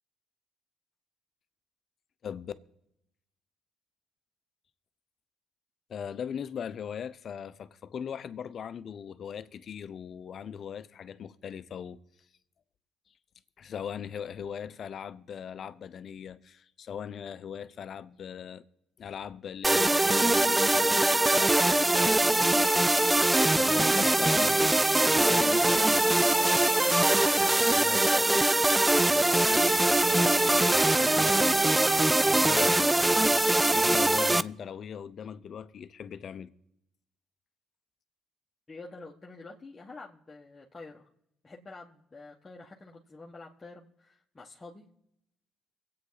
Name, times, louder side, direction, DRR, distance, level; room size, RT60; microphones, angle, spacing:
voice 1, 2.2-2.5 5.9-12.0 13.6-18.6 19.0-28.7 29.1-31.6 32.2-36.5, left 8 dB, 55° left, 0.7 m, -40 dB
sound 1, 19.6-34.4, right 2 dB, 15° right, 0.4 m, -23 dB
sound 2, 25.5-32.2, right 8 dB, 85° right, 1.1 m, -47 dB
voice 2, 38.7-41.1 41.4-44.8, left 3 dB, 25° left, 1.4 m, -48 dB
23.5 x 8.7 x 4.0 m
supercardioid pair, 70°, 0 cm